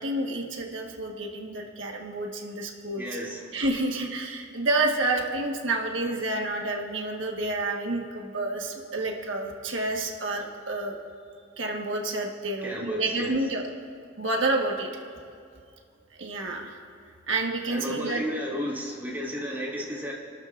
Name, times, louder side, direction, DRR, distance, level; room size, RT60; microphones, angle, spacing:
voice 1, 0.0-3.1 3.5-11.0 11.6-13.6 14.2-14.9 16.2-16.8 17.3-18.2, right 2 dB, 75° right, 0 dB, 1.5 m, -29 dB
voice 2, 3.0-3.5 12.6-13.4 17.7-20.1, equal, 10° right, -5 dB, 2.7 m, -33 dB
30.0 x 13.0 x 2.6 m, 2.3 s
head